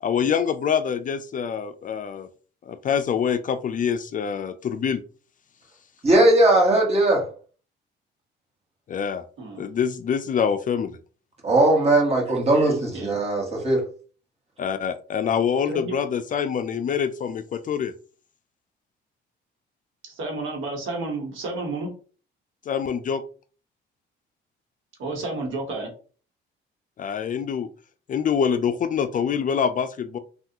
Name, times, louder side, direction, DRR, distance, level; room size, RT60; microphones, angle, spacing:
voice 1, 0.0-2.3 2.6-5.0 8.9-9.2 9.6-11.0 14.6-17.9 22.7-23.2 27.0-27.7 28.1-30.2, left 7 dB, 40° left, 10 dB, 0.4 m, -25 dB
voice 2, 6.0-7.3 11.4-13.8, right 2 dB, 30° right, -1 dB, 1.4 m, -19 dB
voice 3, 12.7-13.2 15.7-16.0 20.0-21.9 25.0-25.9, right 2 dB, 80° right, 2 dB, 1.1 m, -31 dB
3.4 x 2.3 x 2.8 m, 0.40 s
cardioid pair, 90°, 20 cm